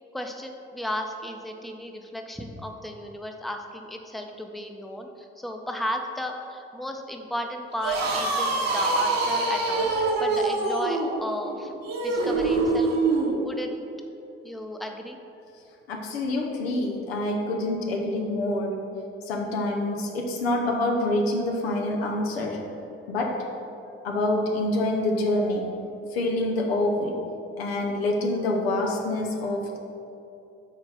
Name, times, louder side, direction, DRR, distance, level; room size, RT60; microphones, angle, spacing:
voice 1, 0.1-11.7 12.0-13.0 13.4-13.8 14.4-15.2, equal, ahead, 4 dB, 0.6 m, -34 dB
sound 1, 7.7-13.4, right 3 dB, 55° right, 1.1 m, -24 dB
voice 2, 15.9-18.8 19.2-22.7 23.1-23.4 24.0-25.8 26.1-27.2 27.6-29.8, left 1 dB, 85° left, 1 dB, 0.6 m, -26 dB
5.9 x 4.3 x 4.1 m, 2.8 s
figure-of-eight pair, 45°, 30 cm